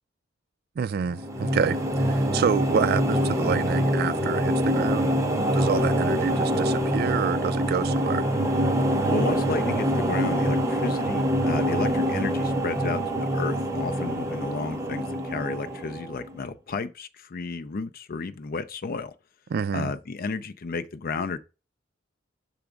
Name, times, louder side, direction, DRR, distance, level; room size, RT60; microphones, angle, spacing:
voice 1, 0.8-5.1 5.5-8.2 19.5-19.9, right 6 dB, 55° right, 0.3 m, -28 dB
sound 1, 1.0-16.4, equal, 15° right, 0.8 m, -25 dB
voice 2, 9.1-19.1 19.7-21.4, left 4 dB, 50° left, 0.5 m, -32 dB
6.0 x 3.5 x 5.0 m
head